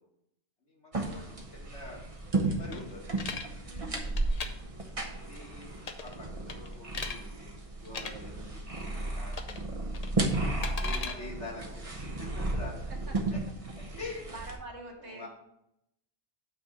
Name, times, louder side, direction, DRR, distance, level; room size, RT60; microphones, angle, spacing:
voice 1, 0.7-1.2 1.5-2.0 2.5-3.2 5.0-5.7 6.0-7.5 7.8-9.8 10.8-12.8 13.3-13.4 13.8-14.3 15.0-15.3, left 2 dB, 80° left, -4 dB, 2.6 m, -45 dB
sound 1, 0.9-14.6, right 2 dB, 35° right, 0.9 m, -34 dB
sound 2, 2.7-3.5 4.0-4.5 5.8-6.2 6.5-7.2 7.8-8.1 9.3-9.6 9.9-11.1, left 5 dB, 40° left, 0.6 m, -38 dB
voice 2, 3.6-4.3 8.7-9.3 11.0-11.5 13.1-13.2 14.0-15.3, right 2 dB, 75° right, 0 dB, 1.8 m, -47 dB
8.3 x 3.5 x 6.4 m, 0.79 s
omnidirectional pair, 1.2 m